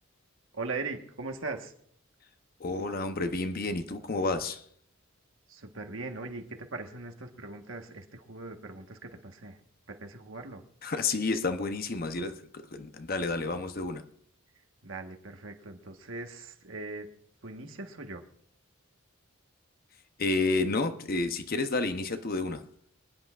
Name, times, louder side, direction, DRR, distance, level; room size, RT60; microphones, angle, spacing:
voice 1, 0.5-1.7 5.5-6.4 6.7-9.6 9.9-10.6 14.8-17.1 17.4-18.2, right 3 dB, 65° right, 1.4 m, -40 dB
voice 2, 2.6-4.7 10.8-14.0 20.2-22.6, left 3 dB, 45° left, 0.8 m, -30 dB
26.0 x 10.0 x 2.5 m
head